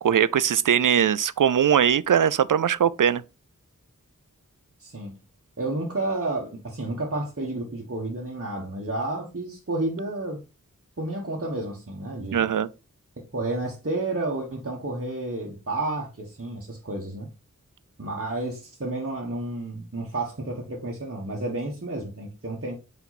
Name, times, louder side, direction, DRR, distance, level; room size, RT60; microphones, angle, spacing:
voice 1, 0.0-3.2 12.3-12.7, right 8 dB, 80° right, 0.5 m, -21 dB
voice 2, 4.8-5.1 5.6-10.4 11.0-12.5 13.3-17.3 18.0-22.7, right 2 dB, 45° right, 1.4 m, -31 dB
5.7 x 4.5 x 4.1 m
wide cardioid pair, 50°, 31 cm